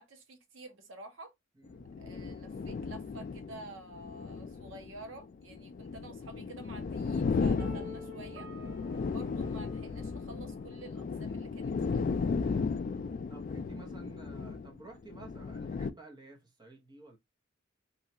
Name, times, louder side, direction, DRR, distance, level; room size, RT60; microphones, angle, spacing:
voice 1, 0.0-1.3 2.0-8.5 9.0-12.1, right 2 dB, 80° right, 0.9 m, -50 dB
voice 2, 1.6-1.9 8.8-9.1 13.3-17.2, right 3 dB, 20° right, 0.9 m, -52 dB
sound 1, 1.7-15.9, left 4 dB, 45° left, 0.3 m, -35 dB
sound 2, 7.6-10.5, equal, 55° right, 1.0 m, -50 dB
3.0 x 2.4 x 2.8 m
head